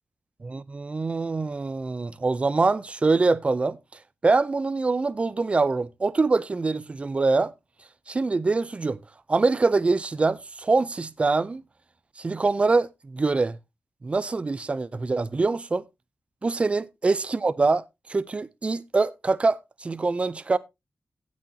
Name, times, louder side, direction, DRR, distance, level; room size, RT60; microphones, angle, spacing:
voice 1, 0.4-3.8 4.2-7.5 8.1-9.0 9.3-11.6 12.2-13.6 14.0-15.8 16.4-20.6, right 3 dB, 25° right, 0.5 m, -24 dB
17.0 x 6.2 x 2.7 m
wide cardioid pair, 175°, 5 cm